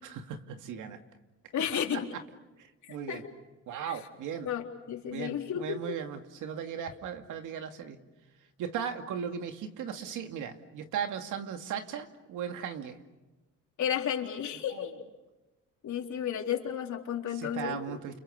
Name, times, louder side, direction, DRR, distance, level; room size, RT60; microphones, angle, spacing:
voice 1, 0.0-1.0 1.7-2.2 2.6-3.2 3.7-4.5 5.1-8.0 8.6-13.0 14.7-15.0 17.3-18.2, right 8 dB, 85° right, 6 dB, 2.5 m, -37 dB
voice 2, 1.5-2.1 2.9-3.2 4.4-6.0 13.8-14.9 15.8-18.0, left 9 dB, 70° left, 2 dB, 4.1 m, -33 dB
30.0 x 30.0 x 6.7 m, 1.1 s
cardioid pair, 90°, 30 cm